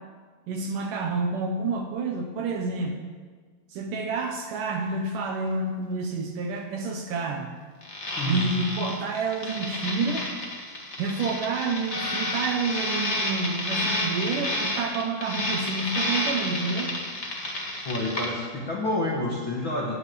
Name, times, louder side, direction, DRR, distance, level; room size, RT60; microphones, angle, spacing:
voice 1, 0.5-3.0 3.7-7.5 8.2-10.3 11.0-16.9, right 3 dB, 70° right, 3 dB, 2.3 m, -29 dB
sound 1, 7.8-18.3, left 1 dB, 35° left, 1.0 m, -30 dB
voice 2, 8.2-8.5 17.8-20.0, left 1 dB, 55° left, -3 dB, 1.4 m, -28 dB
18.0 x 6.6 x 7.7 m, 1.5 s
omnidirectional pair, 4.6 m